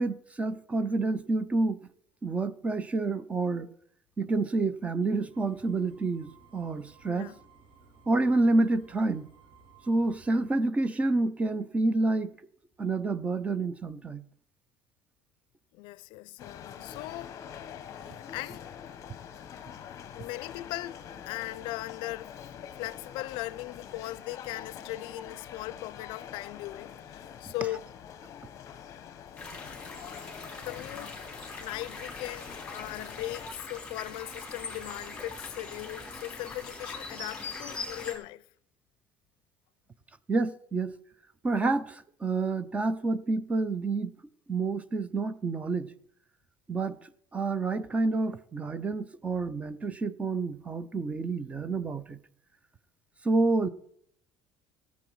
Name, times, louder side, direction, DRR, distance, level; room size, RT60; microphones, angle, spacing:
voice 1, 0.0-1.8 2.2-3.7 4.2-7.3 8.1-9.3 9.9-12.3 12.8-14.2 40.3-41.0 41.4-44.1 44.5-46.0 46.7-52.2 53.2-53.7, right 3 dB, 15° right, 0.5 m, -28 dB
sound 1, 5.3-10.6, right 5 dB, 70° right, 3.1 m, -58 dB
voice 2, 15.7-17.4 17.9-18.7 20.2-22.3 22.8-27.9 30.6-31.2 31.6-38.4, left 18 dB, 70° left, 0.4 m, -39 dB
sound 2, 16.4-33.5, left 8 dB, 35° left, 0.9 m, -45 dB
sound 3, 29.4-38.2, left 3 dB, 10° left, 3.3 m, -42 dB
17.0 x 7.2 x 4.6 m
cardioid pair, 170°, 9 cm